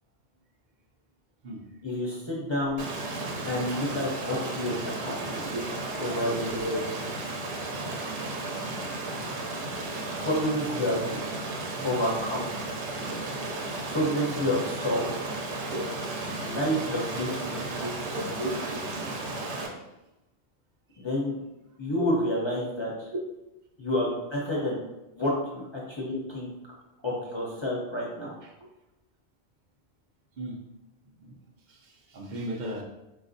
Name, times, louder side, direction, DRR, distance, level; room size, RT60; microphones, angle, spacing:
voice 1, 1.8-2.8 3.4-5.4 6.0-6.8 10.1-11.0 11.8-12.5 13.9-15.1 16.4-18.3 21.0-21.4 21.8-23.1 23.8-24.8 25.1-26.5 27.0-28.3, left 1 dB, 40° left, -5 dB, 0.4 m, -29 dB
Stream, 2.8-19.7, right 2 dB, 80° right, 0.9 m, -34 dB
voice 2, 17.8-18.8 19.3-19.4 22.0-22.1 30.4-30.6 31.2-31.3 31.7-32.8, right 1 dB, 55° right, 1 dB, 0.6 m, -35 dB
4.0 x 2.4 x 2.5 m, 0.96 s
omnidirectional pair, 1.1 m